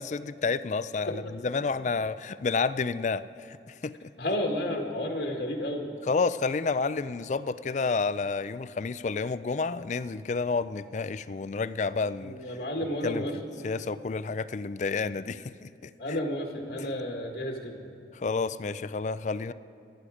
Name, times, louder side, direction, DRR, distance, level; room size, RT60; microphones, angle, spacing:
voice 1, 0.0-4.1 6.0-12.4 13.0-13.3 13.6-16.2 16.8-16.9 18.1-19.5, left 4 dB, 40° left, 15 dB, 0.4 m, -30 dB
voice 2, 4.2-5.9 12.2-13.4 16.0-17.9, left 1 dB, 75° left, 1 dB, 1.8 m, -31 dB
26.0 x 10.0 x 5.0 m, 2.7 s
head